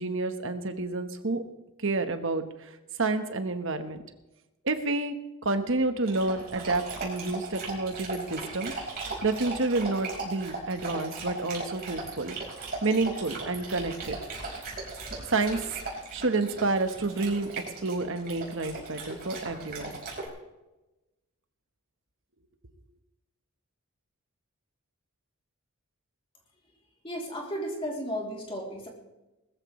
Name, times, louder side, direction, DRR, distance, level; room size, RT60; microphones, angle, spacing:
voice 1, 0.0-1.4 1.8-2.4 3.0-4.0 4.6-5.1 5.4-8.7 9.2-12.4 12.8-14.2 15.3-15.6 16.1-17.5 17.8-20.0, right 3 dB, 60° right, 8 dB, 1.2 m, -29 dB
Dog, 6.0-20.3, right 3 dB, 45° right, 4.9 m, -38 dB
voice 2, 27.0-28.9, equal, 25° left, -1 dB, 3.0 m, -34 dB
19.5 x 14.5 x 3.2 m, 1.0 s
head